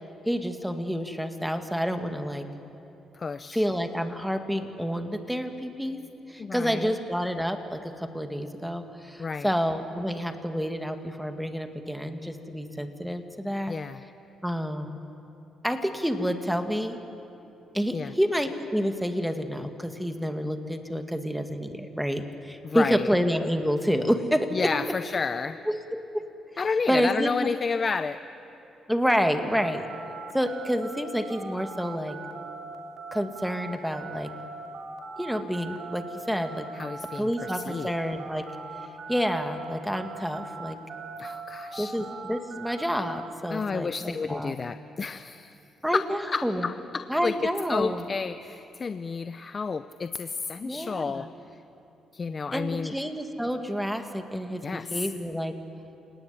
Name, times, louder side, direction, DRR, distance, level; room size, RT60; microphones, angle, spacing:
voice 1, 0.3-2.5 3.5-6.0 6.3-13.8 14.4-15.0 15.6-17.0 17.7-24.5 25.7-26.3 26.9-27.5 28.9-29.9 30.3-32.2 33.1-34.3 35.2-36.7 37.2-38.5 39.1-40.8 41.8-44.5 45.8-46.7 47.1-48.1 50.6-51.3 52.5-55.5, equal, ahead, 7 dB, 2.1 m, -29 dB
voice 2, 3.1-3.6 6.4-6.9 9.2-9.5 13.7-14.0 17.9-18.1 22.6-23.1 24.5-25.6 26.6-28.2 36.7-37.9 41.2-41.9 43.5-45.6 45.9-47.4 47.7-51.3 52.1-53.0 54.6-55.1, left 5 dB, 35° left, 12 dB, 0.6 m, -31 dB
sound 1, 29.5-39.7 39.9-43.2, right 4 dB, 55° right, 3.4 m, -40 dB
29.0 x 18.0 x 9.9 m, 2.9 s
cardioid pair, 90°, 0 cm